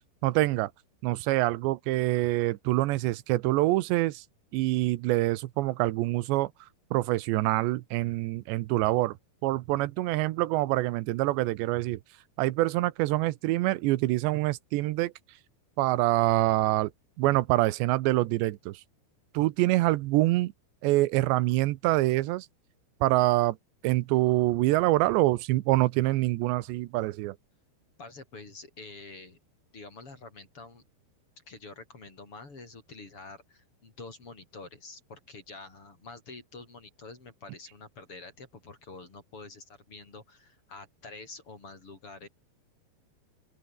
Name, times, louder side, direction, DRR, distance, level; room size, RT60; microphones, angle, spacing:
voice 1, 0.2-0.7 1.0-4.2 4.5-6.5 6.9-9.2 9.4-12.0 12.4-15.1 15.8-16.9 17.2-18.8 19.3-20.5 20.8-22.5 23.0-23.6 23.8-27.4, right 18 dB, 85° right, 3.1 m, -25 dB
voice 2, 28.0-29.4 29.7-30.8 31.5-42.3, left 3 dB, 30° left, 5.6 m, -47 dB
open air
omnidirectional pair, 5.0 m